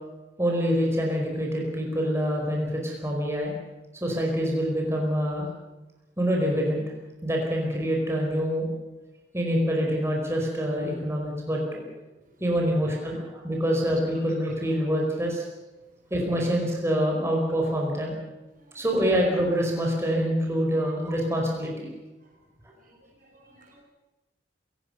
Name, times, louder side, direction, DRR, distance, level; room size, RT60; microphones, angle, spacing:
voice 1, 0.4-3.5 4.0-5.5 6.2-6.9 7.2-8.7 9.3-11.9 12.4-15.5 16.1-18.2 18.7-21.9, equal, 15° right, -1 dB, 5.0 m, -26 dB
voice 2, 12.7-13.1 18.5-18.9 20.7-20.8 22.2-22.3 22.8-23.8, right 1 dB, 50° right, 2 dB, 5.3 m, -54 dB
27.5 x 16.5 x 6.8 m, 1.1 s
head